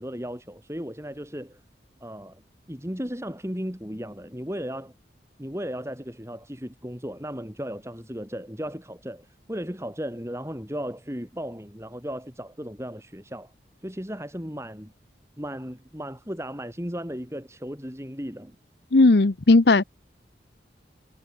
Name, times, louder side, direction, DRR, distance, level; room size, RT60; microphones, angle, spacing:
voice 1, 0.0-1.6 2.0-2.4 2.7-4.9 5.4-13.5 13.8-14.9 15.4-18.5, equal, 15° right, 5.1 m, -35 dB
voice 2, 18.9-19.8, left 2 dB, 70° left, 0.8 m, -16 dB
head